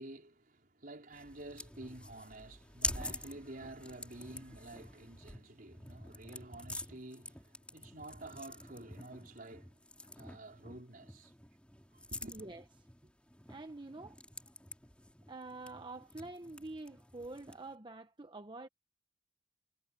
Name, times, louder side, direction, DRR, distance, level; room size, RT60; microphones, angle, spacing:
voice 1, 0.0-11.3 12.1-12.4, right 2 dB, 50° right, 4.4 m, -50 dB
sound 1, 1.1-17.7, left 1 dB, 5° left, 2.9 m, -47 dB
voice 2, 12.3-12.6 13.5-14.2 15.3-18.7, right 2 dB, 25° right, 1.0 m, -46 dB
head